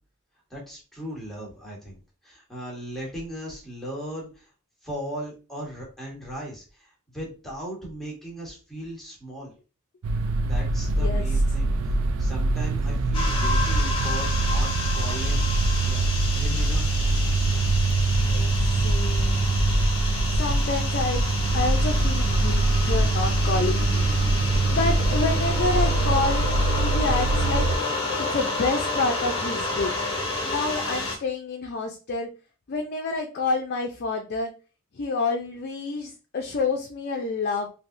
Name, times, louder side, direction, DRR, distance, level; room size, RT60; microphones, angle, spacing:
voice 1, 0.5-4.5 4.8-9.6 10.4-16.0 16.3-17.0, equal, ahead, -3 dB, 1.2 m, -38 dB
sound 1, 10.0-27.8, right 2 dB, 80° right, 0.4 m, -23 dB
voice 2, 10.9-11.2 18.2-18.6 18.8-19.5 20.4-21.2 21.5-26.5 26.8-27.6 28.2-29.9 30.4-32.3 32.7-34.5 34.9-37.7, left 3 dB, 50° left, 3 dB, 0.5 m, -28 dB
sound 2, 13.1-31.1, left 2 dB, 25° left, 0.8 m, -30 dB
3.4 x 2.8 x 2.6 m, 0.33 s
head